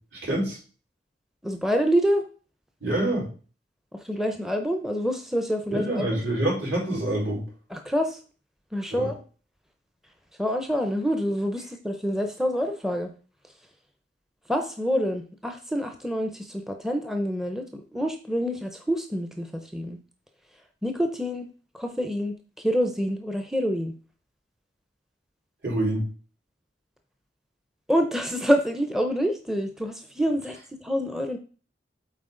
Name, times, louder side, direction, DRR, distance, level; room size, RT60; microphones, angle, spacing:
voice 1, 0.1-0.6 2.8-3.3 5.7-7.4 8.9-9.1 25.6-26.0, right 1 dB, 70° right, -4 dB, 4.1 m, -26 dB
voice 2, 1.4-2.2 3.9-6.2 7.7-8.2 8.7-9.2 10.4-13.1 14.5-20.0 20.8-21.5 21.7-23.9 27.9-31.4, equal, ahead, 5 dB, 0.6 m, -27 dB
8.1 x 4.3 x 3.8 m, 0.38 s
head